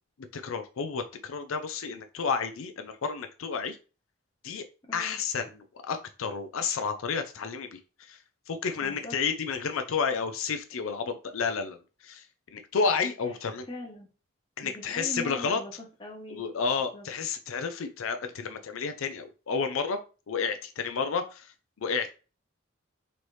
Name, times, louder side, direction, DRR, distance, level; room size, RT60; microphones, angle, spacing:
voice 1, 0.3-3.8 4.4-4.6 4.9-8.2 8.5-12.3 12.5-13.7 14.6-15.6 16.3-20.0 20.3-21.5 21.8-22.1, left 5 dB, 80° left, 7 dB, 0.5 m, -31 dB
voice 2, 4.8-5.2 8.8-9.2 13.7-14.1 14.6-16.4 16.9-17.1, left 1 dB, 25° left, 1 dB, 0.9 m, -41 dB
4.0 x 3.1 x 3.1 m, 0.34 s
head